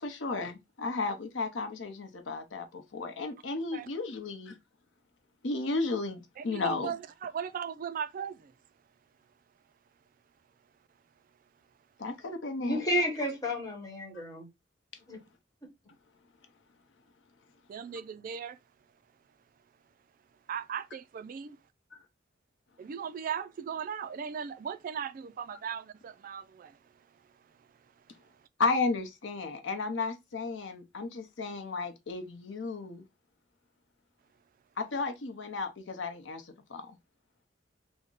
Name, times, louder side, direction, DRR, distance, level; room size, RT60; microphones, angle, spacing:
voice 1, 0.0-4.5 5.4-6.9 12.0-12.8 28.6-33.0 34.8-36.4 36.7-36.9, left 3 dB, 85° left, 0.7 m, -33 dB
voice 2, 6.4-8.5 17.7-18.6 20.5-21.6 22.8-26.8, right 7 dB, 45° right, 0.3 m, -38 dB
voice 3, 12.6-14.5 15.1-15.2, equal, 20° left, 1.2 m, -31 dB
3.5 x 2.1 x 3.8 m
head